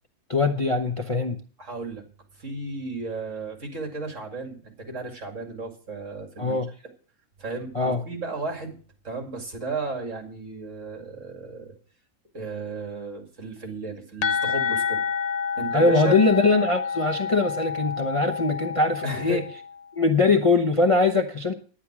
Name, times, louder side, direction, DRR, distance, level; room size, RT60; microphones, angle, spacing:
voice 1, 0.3-1.4 6.4-6.7 7.7-8.0 15.7-19.4 20.0-21.5, left 3 dB, 30° left, 5 dB, 0.8 m, -21 dB
voice 2, 1.6-2.0 2.4-6.6 7.4-8.7 9.0-11.7 12.3-15.0 15.6-16.1 19.0-19.5, right 3 dB, 60° right, 4 dB, 2.8 m, -34 dB
sound 1, 14.2-19.8, left 6 dB, 55° left, 0.4 m, -29 dB
10.0 x 10.0 x 6.1 m, 0.40 s
omnidirectional pair, 1.5 m